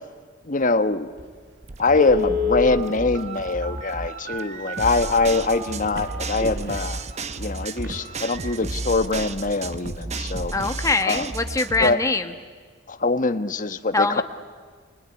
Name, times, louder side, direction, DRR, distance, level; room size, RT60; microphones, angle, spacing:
voice 1, 0.5-1.1 1.8-7.0 7.4-10.5 11.0-11.3 11.8-12.0 12.9-14.2, left 3 dB, 40° left, 10 dB, 1.2 m, -23 dB
Telephone, 1.2-1.3 1.9-6.8 7.3-7.4 7.8-8.0 8.3-8.6 8.9-9.0, left 4 dB, 65° right, 4.3 m, -29 dB
sound 1, 1.6-12.0, right 2 dB, 35° right, 0.9 m, -33 dB
voice 2, 10.5-12.3 13.9-14.2, left 3 dB, 15° left, 7 dB, 1.4 m, -23 dB
26.0 x 23.5 x 9.8 m, 1.5 s
head